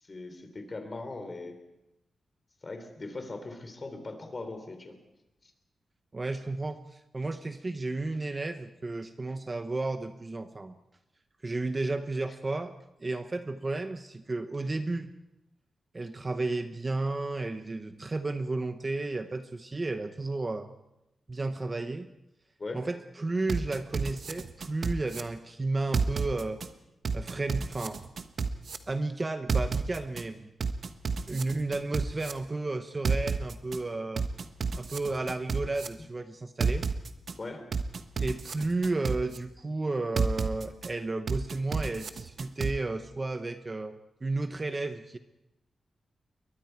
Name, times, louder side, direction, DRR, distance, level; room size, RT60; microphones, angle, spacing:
voice 1, 0.0-1.6 2.6-5.0 5.4-5.5 22.6-22.8 37.4-37.7, left 3 dB, 30° left, 7 dB, 3.2 m, -40 dB
voice 2, 6.1-10.8 11.4-12.7 13.0-15.1 15.9-20.7 21.3-22.1 22.7-26.6 27.1-28.0 28.9-30.5 31.3-34.3 34.8-36.9 38.2-45.2, right 2 dB, 25° right, 8 dB, 0.9 m, -33 dB
sound 1, 23.5-25.2 25.9-26.7 27.0-28.8 29.5-30.2 30.6-32.3 33.0-33.8 34.2-35.9 36.6-37.3 37.7-39.4 40.2-40.9 41.3-42.7, right 5 dB, 50° right, 1.3 m, -30 dB
28.5 x 23.0 x 4.6 m, 0.88 s
wide cardioid pair, 165°, 0 cm